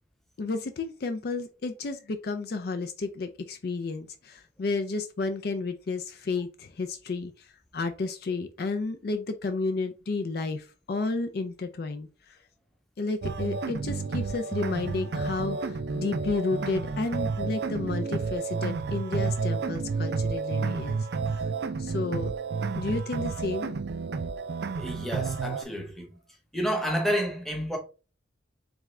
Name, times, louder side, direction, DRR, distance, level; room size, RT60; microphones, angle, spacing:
voice 1, 0.4-7.5 7.7-12.4 13.0-21.4 21.8-22.3 22.7-23.8, left 3 dB, 50° left, 0.4 m, -32 dB
sound 1, 13.2-25.6, right 4 dB, 55° right, 0.4 m, -31 dB
voice 2, 24.8-26.1 26.5-27.8, equal, ahead, 0.9 m, -29 dB
3.6 x 3.5 x 3.2 m
head